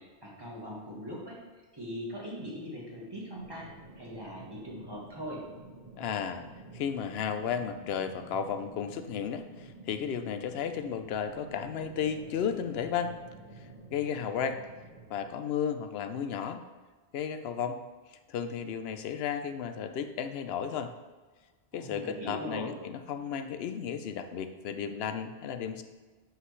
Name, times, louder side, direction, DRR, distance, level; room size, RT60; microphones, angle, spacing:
voice 1, 0.0-1.3 1.7-3.7 4.0-5.4 21.7-22.7, equal, 20° right, -4 dB, 1.5 m, -40 dB
sound 1, 3.3-15.3, right 2 dB, 35° right, 1.3 m, -50 dB
voice 2, 6.0-6.5 6.7-13.2 13.9-14.6 15.1-16.6 17.1-17.8 18.3-20.9 21.7-25.8, left 7 dB, 70° left, 9 dB, 0.8 m, -33 dB
7.6 x 5.6 x 3.2 m, 1.3 s
omnidirectional pair, 1.2 m